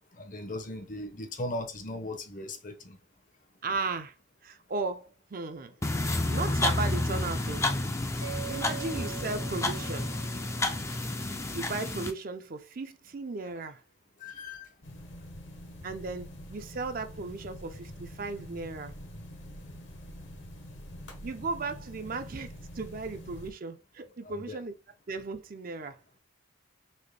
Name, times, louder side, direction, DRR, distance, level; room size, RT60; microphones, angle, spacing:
voice 1, 0.2-3.0 14.2-14.7 24.2-24.6, left 1 dB, 40° left, 0.7 m, -38 dB
voice 2, 3.6-4.1 4.4-5.7 6.3-7.7 8.5-10.2 11.5-13.8 15.8-19.0 21.2-24.7 25.1-26.0, right 3 dB, 45° right, 0.5 m, -36 dB
sound 1, 5.8-12.1, left 2 dB, 15° left, 0.4 m, -30 dB
Mallet percussion, 8.2-11.2, right 10 dB, 75° right, 0.8 m, -43 dB
sound 2, 14.8-23.5, equal, 65° left, 1.1 m, -45 dB
4.2 x 3.0 x 3.3 m
head